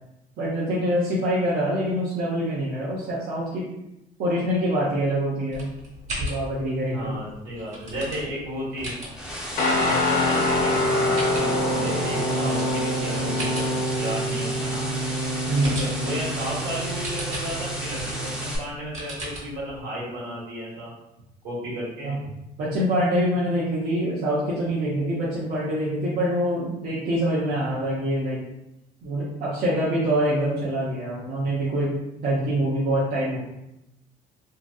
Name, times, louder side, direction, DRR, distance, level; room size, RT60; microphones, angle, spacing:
voice 1, 0.4-3.7 4.2-5.7 6.2-7.1 12.1-12.5 15.5-15.8 22.0-22.1 22.6-28.4 29.0-33.4, equal, 60° right, -7 dB, 0.7 m, -25 dB
sound 1, 5.5-19.8, equal, 45° right, 1.4 m, -39 dB
voice 2, 6.9-8.9 9.7-14.9 15.6-20.9 21.4-22.2, equal, 80° right, -6 dB, 1.4 m, -33 dB
sound 2, 8.8-18.6, equal, 5° right, 0.6 m, -34 dB
Guitar, 9.6-18.5, left 1 dB, 60° left, 0.7 m, -26 dB
2.8 x 2.6 x 2.3 m, 0.89 s
cardioid pair, 110°, 17 cm